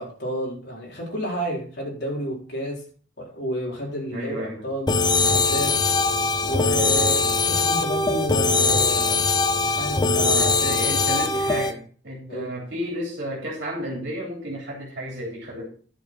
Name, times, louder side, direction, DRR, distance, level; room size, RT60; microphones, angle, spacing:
voice 1, 0.0-2.8 3.2-6.1 6.4-9.2 9.6-10.8 12.3-12.5, equal, 60° left, -3 dB, 4.1 m, -31 dB
voice 2, 4.1-4.7 10.3-15.7, equal, 55° right, -2 dB, 3.1 m, -32 dB
sound 1, 4.9-11.7, left 3 dB, 20° left, 0.7 m, -21 dB
10.5 x 6.6 x 4.8 m, 0.43 s
head